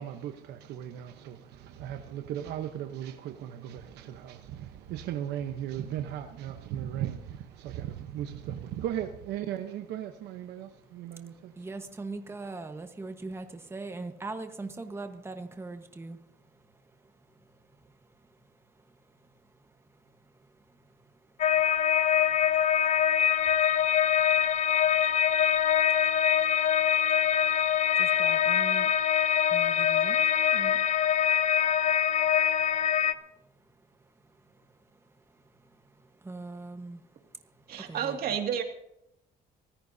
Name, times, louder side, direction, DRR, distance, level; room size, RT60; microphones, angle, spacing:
voice 1, 0.0-11.7, right 10 dB, 80° right, 7 dB, 1.0 m, -37 dB
voice 2, 11.1-33.0 33.3-33.7 34.0-38.3, right 3 dB, 15° right, 6 dB, 1.3 m, -45 dB
sound 1, 21.4-33.1, left 9 dB, 45° left, 0.7 m, -24 dB
voice 3, 37.7-38.6, right 8 dB, 65° right, 4 dB, 2.2 m, -30 dB
24.0 x 15.0 x 2.8 m, 0.80 s
cardioid pair, 110°, 17 cm